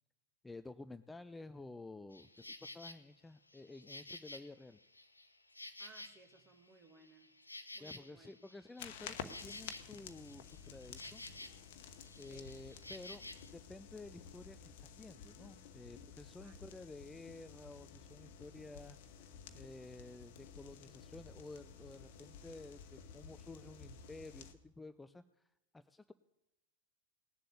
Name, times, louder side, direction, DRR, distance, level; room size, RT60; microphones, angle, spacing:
voice 1, 0.4-4.8 7.8-11.2 12.2-13.2 13.5-25.2 25.7-26.1, left 2 dB, 10° left, 12 dB, 0.4 m, -52 dB
Insect, 2.1-3.0 3.5-6.5 6.8-11.7 12.0-13.5, left 2 dB, 85° left, 0.9 m, -52 dB
voice 2, 5.6-7.3 7.7-8.3 12.3-12.5 16.4-16.6, right 4 dB, 30° right, 6 dB, 2.1 m, -62 dB
sound 1, 8.8-24.5, left 7 dB, 50° left, 1.1 m, -52 dB
18.5 x 7.6 x 8.3 m, 0.93 s
figure-of-eight pair, 90°, 0 cm